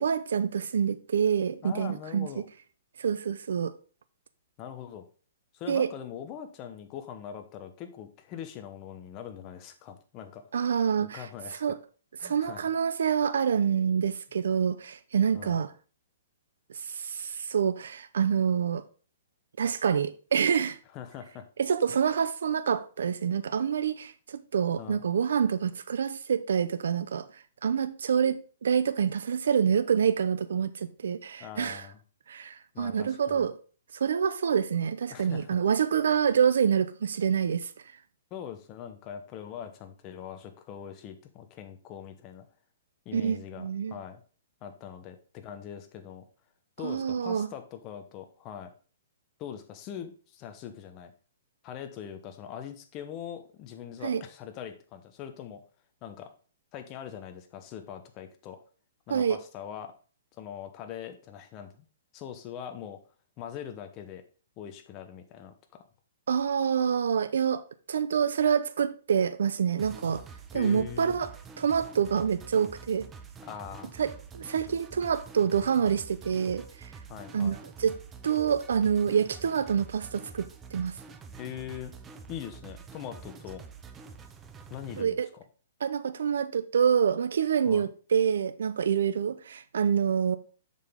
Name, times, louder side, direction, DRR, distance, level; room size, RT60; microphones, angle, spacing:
voice 1, 0.0-2.3 3.0-3.7 5.7-5.9 10.5-11.3 11.6-11.8 12.2-15.7 16.7-18.8 19.6-20.8 21.6-31.9 32.3-33.6 33.9-37.7 43.1-43.9 46.8-47.5 54.0-54.2 59.1-59.4 66.3-70.2 70.5-71.3 71.6-73.1 74.0-76.9 77.3-78.0 78.2-80.9 85.0-85.3 85.8-90.4, right 7 dB, 80° right, 0.5 m, -27 dB
voice 2, 1.6-2.4 4.6-5.0 5.5-10.4 11.0-11.6 12.2-12.7 15.3-15.6 20.9-21.5 24.8-25.0 31.4-32.0 32.7-33.5 35.1-35.6 38.3-42.5 43.0-44.2 44.6-46.2 46.8-48.7 49.4-51.1 51.6-55.6 56.0-56.3 56.7-58.6 59.1-59.9 60.4-61.8 62.1-63.0 63.4-64.2 64.6-65.8 70.5-71.1 73.4-74.0 77.1-77.6 81.4-81.9 82.3-83.6 84.7-85.4 87.7-87.9, left 9 dB, 25° left, 0.9 m, -42 dB
sound 1, 69.8-85.0, right 5 dB, 15° right, 0.6 m, -47 dB
7.3 x 5.9 x 3.6 m
hypercardioid pair, 165°, 0 cm